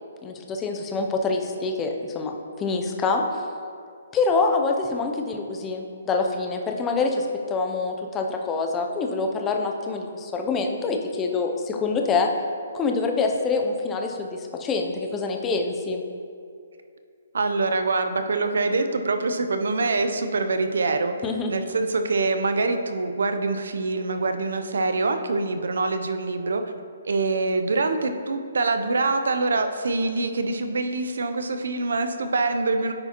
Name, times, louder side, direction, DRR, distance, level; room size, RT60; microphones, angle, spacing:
voice 1, 0.2-3.2 4.1-12.3 12.7-16.0 21.2-21.6, left 4 dB, 15° left, 2 dB, 0.5 m, -26 dB
voice 2, 17.3-21.1 21.5-26.6 27.0-32.9, right 3 dB, 80° right, 7 dB, 0.5 m, -25 dB
9.5 x 4.7 x 2.9 m, 2.4 s
hypercardioid pair, 160°, 0 cm